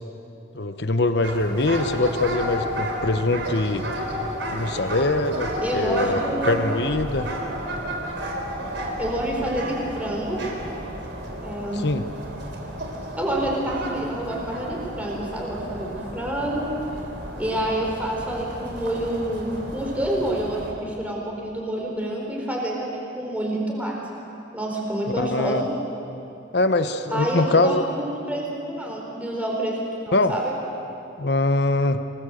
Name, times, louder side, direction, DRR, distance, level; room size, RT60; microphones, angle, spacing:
voice 1, 0.5-3.8 4.5-6.2 6.4-7.3 11.7-12.0 25.2-25.6 26.5-27.9 30.1-30.3 31.2-32.0, left 2 dB, 55° left, 9 dB, 1.0 m, -23 dB
sound 1, 1.2-20.7, equal, 70° right, 3.8 m, -32 dB
voice 2, 5.6-6.6 9.0-10.4 11.3-11.9 13.2-16.7 17.4-24.0 24.5-25.7 27.1-30.5, right 1 dB, 10° right, -2 dB, 4.5 m, -28 dB
27.5 x 19.5 x 7.9 m, 2.8 s
head